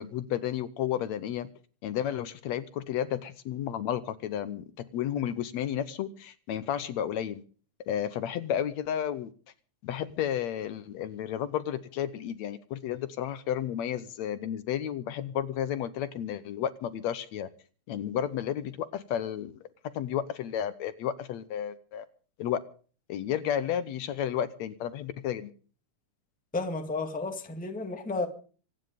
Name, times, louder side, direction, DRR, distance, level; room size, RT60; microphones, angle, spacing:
voice 1, 0.0-1.5 1.8-4.6 4.9-7.4 7.9-9.3 9.8-17.5 17.9-19.6 19.9-22.1 22.4-22.6 23.1-25.5, left 10 dB, 70° left, 2.0 m, -32 dB
voice 2, 26.5-28.3, left 3 dB, 5° left, 1.2 m, -32 dB
25.0 x 9.8 x 5.2 m
omnidirectional pair, 3.4 m